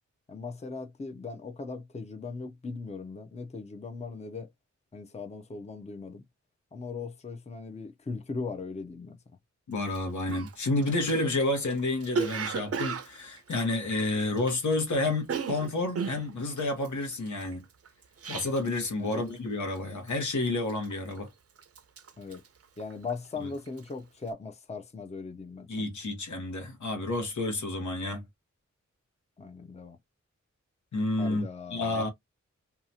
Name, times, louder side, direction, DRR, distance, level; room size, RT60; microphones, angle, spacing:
voice 1, 0.3-4.5 4.9-6.2 6.7-9.2 19.0-19.3 22.2-22.4 22.8-25.9 29.4-30.0 31.2-32.1, left 4 dB, 25° left, 0.5 m, -39 dB
voice 2, 9.7-17.6 18.3-21.3 23.4-23.5 25.7-28.2 30.9-31.4 31.7-32.1, left 2 dB, 80° left, 1.0 m, -30 dB
Cough, 9.9-10.0 10.3-14.7 15.0-18.8 19.1-19.5 19.7-20.2 20.7-21.3 21.6-23.3 23.6-23.9, right 5 dB, 55° right, 0.5 m, -35 dB
2.8 x 2.3 x 2.7 m
wide cardioid pair, 70°, 29 cm